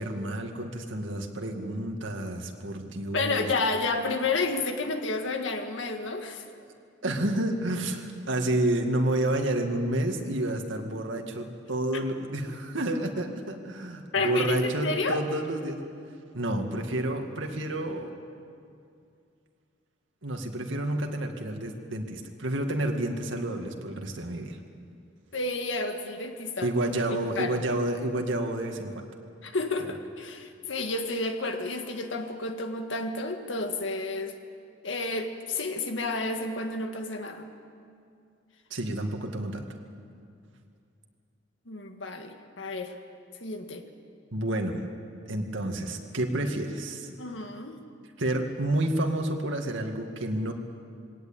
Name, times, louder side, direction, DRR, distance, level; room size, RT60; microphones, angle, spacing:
voice 1, 0.0-3.5 7.0-15.8 16.3-18.1 20.2-24.6 26.6-29.0 38.7-39.7 44.3-44.8 45.3-47.1 48.2-50.5, right 1 dB, 90° right, 3 dB, 2.1 m, -30 dB
voice 2, 3.1-6.4 14.1-15.2 25.3-26.7 27.4-27.6 29.4-34.3 34.8-37.5 41.7-42.9 43.4-43.9 47.2-47.8, left 3 dB, 80° left, 6 dB, 1.8 m, -30 dB
21.5 x 18.0 x 8.8 m, 2.4 s
head